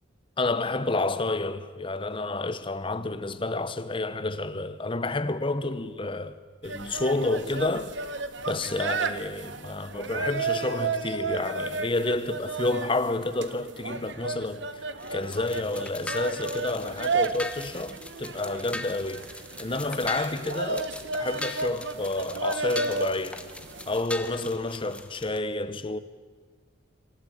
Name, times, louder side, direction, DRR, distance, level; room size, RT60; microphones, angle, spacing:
voice 1, 0.4-6.4 6.6-8.0 8.5-14.8 15.1-19.3 19.6-23.4 23.9-26.0, left 2 dB, 25° left, 0.9 m, -29 dB
sound 1, 6.6-24.0, right 4 dB, 60° right, 1.1 m, -33 dB
sound 2, 15.0-25.4, left 2 dB, 5° left, 1.1 m, -40 dB
26.5 x 13.5 x 8.7 m
head